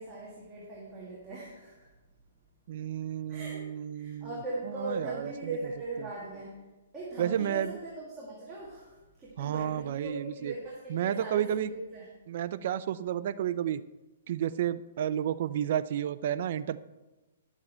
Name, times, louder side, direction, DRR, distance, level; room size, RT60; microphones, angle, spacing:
voice 1, 0.0-1.9 3.3-3.6 3.9-6.5 6.9-12.1, right 2 dB, 10° right, -7 dB, 1.8 m, -40 dB
voice 2, 2.7-4.4 4.8-5.3 6.0-6.1 7.2-7.8 9.4-10.5 10.9-11.7 12.3-13.8 14.3-16.8, right 10 dB, 45° right, 15 dB, 0.4 m, -31 dB
11.0 x 7.3 x 4.4 m, 1.1 s
hypercardioid pair, 170°, 0 cm